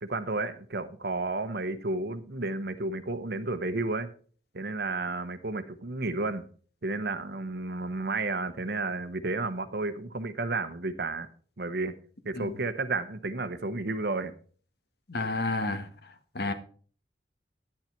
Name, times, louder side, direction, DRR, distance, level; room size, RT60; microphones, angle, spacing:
voice 1, 0.0-4.1 4.5-6.5 6.8-11.3 11.6-11.9 12.2-14.3, right 3 dB, 60° right, 0.9 m, -32 dB
voice 2, 15.1-15.9 16.3-16.5, left 2 dB, 60° left, 1.4 m, -30 dB
10.0 x 8.8 x 4.5 m
head